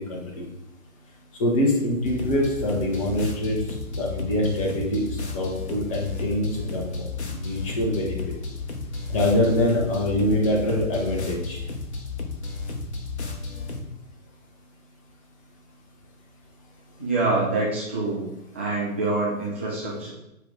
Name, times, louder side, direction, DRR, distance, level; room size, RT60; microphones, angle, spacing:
voice 1, 0.1-0.5 1.4-3.6 3.9-8.1 9.1-11.6, left 1 dB, 25° left, -2 dB, 1.2 m, -24 dB
sound 1, 2.0-13.8, left 3 dB, 50° left, 1.1 m, -33 dB
voice 2, 17.0-18.3 18.5-20.1, right 2 dB, 10° right, -9 dB, 0.5 m, -25 dB
8.8 x 3.3 x 3.8 m, 0.88 s
figure-of-eight pair, 135°, 42 cm